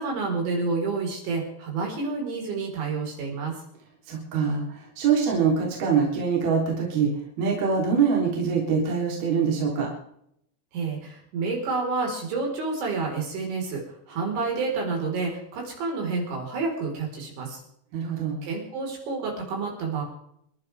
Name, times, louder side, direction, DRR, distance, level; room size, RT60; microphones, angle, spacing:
voice 1, 0.0-3.5 10.7-13.8 14.1-17.6 18.4-20.0, right 4 dB, 75° right, 0 dB, 7.0 m, -29 dB
voice 2, 4.1-7.1 7.4-9.9 17.9-18.4, right 6 dB, 55° right, -2 dB, 5.3 m, -24 dB
28.0 x 12.0 x 3.6 m, 0.73 s
omnidirectional pair, 5.3 m